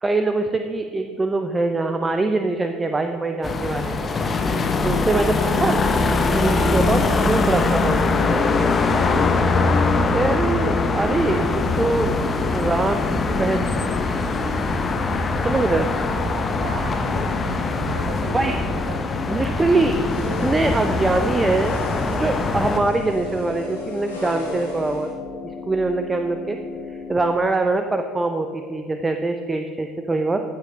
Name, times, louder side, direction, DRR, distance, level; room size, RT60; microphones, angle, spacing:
voice 1, 0.0-4.1 4.8-5.8 6.3-8.2 10.1-12.1 12.5-13.9 15.4-15.9 18.3-18.6 19.3-20.0 20.4-21.8 22.1-25.1 25.7-26.6 26.9-30.4, right 3 dB, 20° right, 7 dB, 0.6 m, -23 dB
sound 1, 3.4-22.8, left 3 dB, 30° left, 1.0 m, -22 dB
voice 2, 5.4-5.8 11.3-11.4 16.5-19.3, right 4 dB, 60° right, 8 dB, 1.0 m, -35 dB
sound 2, 11.5-27.4, left 5 dB, 45° left, 1.2 m, -36 dB
sound 3, 20.1-25.1, left 1 dB, 85° left, 2.4 m, -36 dB
15.0 x 6.5 x 5.0 m, 2.4 s
figure-of-eight pair, 60°, 0 cm